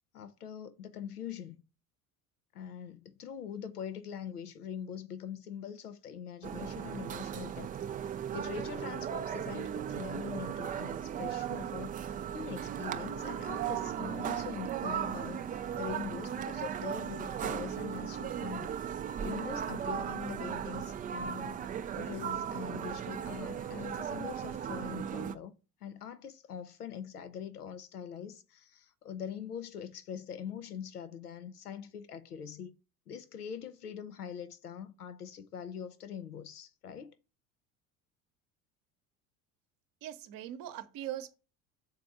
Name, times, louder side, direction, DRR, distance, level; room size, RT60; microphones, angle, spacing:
voice 1, 0.1-1.6 2.5-7.7 8.1-18.8 19.2-21.6 22.0-25.5 25.8-32.7 33.1-37.2, left 8 dB, 90° left, 0.7 m, -43 dB
sound 1, 6.4-25.4, right 9 dB, 20° right, 0.3 m, -37 dB
voice 2, 40.0-41.4, right 12 dB, 50° right, 0.9 m, -41 dB
6.3 x 4.2 x 4.6 m
hypercardioid pair, 70°, 44 cm